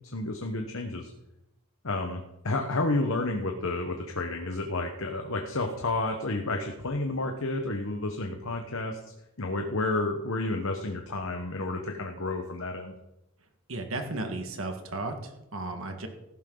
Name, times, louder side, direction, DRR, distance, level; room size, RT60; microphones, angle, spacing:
voice 1, 0.1-1.1 1.8-9.0 9.4-12.9, left 2 dB, 65° left, 4 dB, 1.1 m, -30 dB
voice 2, 13.7-16.1, right 2 dB, 65° right, 5 dB, 1.7 m, -34 dB
15.0 x 12.0 x 3.9 m, 0.91 s
head